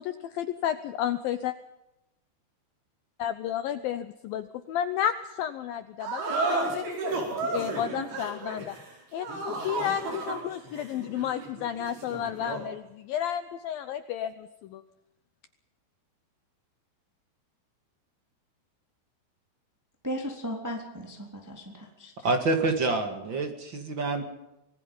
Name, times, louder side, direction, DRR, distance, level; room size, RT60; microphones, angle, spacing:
voice 1, 0.0-1.6 3.2-7.0 7.4-8.8 9.1-14.8, left 10 dB, 80° left, 11 dB, 2.1 m, -32 dB
sound 1, 6.0-12.7, right 3 dB, 60° right, 6.2 m, -33 dB
voice 2, 20.0-22.1, equal, 5° right, 1 dB, 2.8 m, -36 dB
voice 3, 22.2-24.2, right 3 dB, 40° right, 6 dB, 1.7 m, -27 dB
26.0 x 19.5 x 5.5 m, 0.91 s
omnidirectional pair, 5.1 m